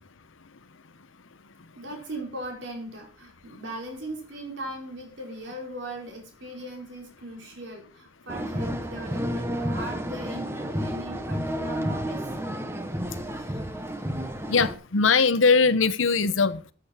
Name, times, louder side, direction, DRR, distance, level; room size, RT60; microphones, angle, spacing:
voice 1, 1.7-12.4, right 1 dB, 70° right, 4.8 m, -39 dB
sound 1, 8.3-14.7, equal, 15° right, 1.1 m, -31 dB
voice 2, 14.5-16.7, left 4 dB, 85° left, 0.9 m, -21 dB
13.0 x 8.5 x 4.5 m
head